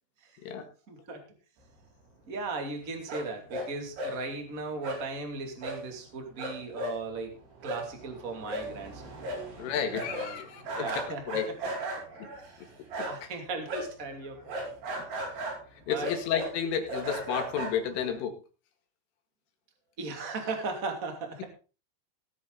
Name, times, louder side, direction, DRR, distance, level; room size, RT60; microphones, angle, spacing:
voice 1, 0.9-1.2 2.3-7.3 7.6-9.2 9.6-9.7 10.0-11.2 11.6-11.7 13.0-14.7 15.9-16.1 20.0-21.4, right 3 dB, 30° right, 4 dB, 1.6 m, -37 dB
sound 1, 3.1-3.7 4.0-4.2 4.8-5.0 5.6-5.8 6.1-6.2 6.4-13.3 13.7-18.2, right 1 dB, 60° right, 7.0 m, -37 dB
voice 2, 9.6-11.5 12.6-12.7 13.0-13.1 15.3-15.4 15.9-18.4, left 8 dB, 70° left, 5 dB, 4.5 m, -32 dB
18.5 x 8.6 x 4.0 m, 0.34 s
omnidirectional pair, 6.0 m